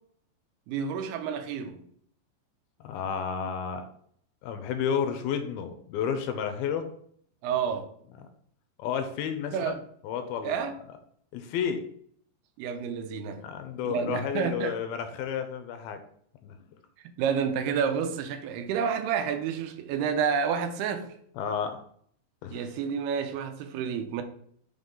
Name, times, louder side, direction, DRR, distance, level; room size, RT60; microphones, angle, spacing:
voice 1, 0.7-1.9 7.4-7.9 9.5-9.8 10.4-10.8 12.6-13.4 13.8-14.8 17.2-21.1 22.5-24.2, right 7 dB, 90° right, 2.7 m, -29 dB
voice 2, 2.8-3.9 4.4-6.9 8.8-9.8 10.0-10.6 11.3-11.8 13.4-16.0 16.4-16.6 21.4-21.8 22.4-22.6, left 7 dB, 80° left, 2.4 m, -31 dB
6.1 x 3.7 x 5.4 m
omnidirectional pair, 4.6 m